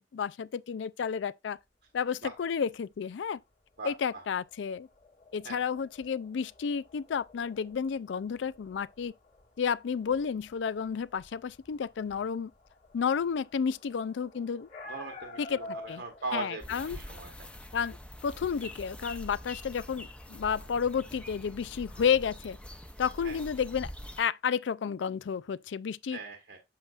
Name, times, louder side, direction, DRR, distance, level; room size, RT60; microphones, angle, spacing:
voice 1, 0.0-1.6 1.9-3.4 3.8-4.9 5.3-9.1 9.6-12.5 12.9-14.7 15.4-15.6 15.9-16.0 16.3-17.0 17.7-22.6 23.0-23.9 24.2-26.2, left 7 dB, 85° left, 0.4 m, -31 dB
sound 1, 3.8-16.3, left 1 dB, 45° left, 2.0 m, -50 dB
voice 2, 3.8-4.2 5.4-5.6 14.9-17.3 23.2-23.4 26.1-26.6, right 3 dB, 70° right, 1.2 m, -40 dB
sound 2, 16.6-24.2, left 1 dB, 5° left, 0.7 m, -45 dB
7.6 x 7.2 x 2.4 m
head